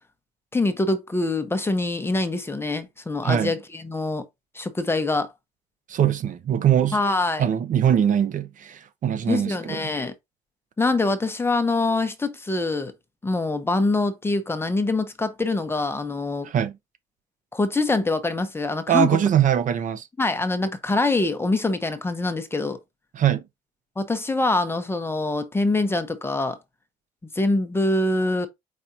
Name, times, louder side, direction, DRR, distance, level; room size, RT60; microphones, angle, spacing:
voice 1, 0.5-4.2 4.5-5.3 6.9-7.4 9.3-10.1 10.8-12.9 13.2-16.5 17.5-19.1 20.2-22.8 24.0-26.6 27.3-28.5, left 2 dB, 15° left, 0.8 m, -24 dB
voice 2, 3.2-3.5 5.9-7.0 7.4-9.9 16.4-16.8 18.9-20.1 23.1-23.4, right 9 dB, 50° right, 0.7 m, -22 dB
4.8 x 4.2 x 2.6 m
cardioid pair, 110°, 17 cm